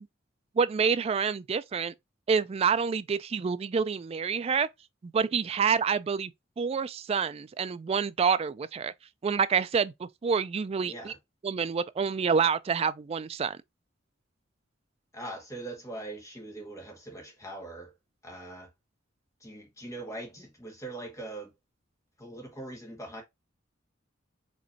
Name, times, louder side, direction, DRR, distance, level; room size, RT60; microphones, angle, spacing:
voice 1, 0.6-1.9 2.3-4.7 5.0-6.3 6.6-8.9 9.2-11.1 11.4-13.6, right 6 dB, 30° right, 0.3 m, -27 dB
voice 2, 10.8-11.2 15.1-17.9 18.2-18.7 19.4-21.5 22.2-23.2, right 2 dB, 15° left, 1.6 m, -41 dB
5.2 x 3.1 x 2.7 m
head